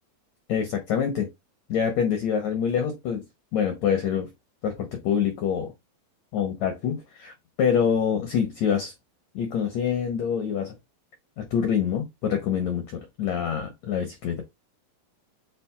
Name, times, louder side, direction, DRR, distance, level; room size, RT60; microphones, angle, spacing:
voice 1, 0.5-1.3 1.7-3.2 3.5-4.3 4.6-5.7 6.3-7.3 7.6-8.9 9.3-10.7 11.4-14.4, left 7 dB, 80° left, 1.5 m, -26 dB
7.5 x 3.1 x 2.3 m
omnidirectional pair, 4.3 m